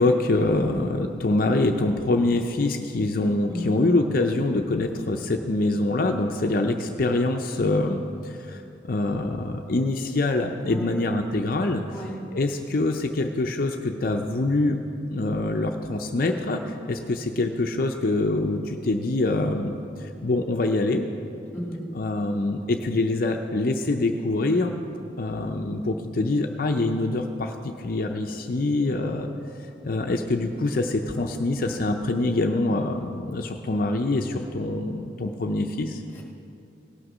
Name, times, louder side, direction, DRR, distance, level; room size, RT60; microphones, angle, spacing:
voice 1, 0.0-11.8 12.3-14.8 15.1-21.1 21.9-24.7 25.2-27.5 27.8-29.3 29.8-36.0, left 2 dB, 50° left, 4 dB, 0.5 m, -25 dB
voice 2, 21.5-21.9 36.1-36.2, equal, 10° left, -1 dB, 1.8 m, -34 dB
17.0 x 6.5 x 6.1 m, 2.6 s
head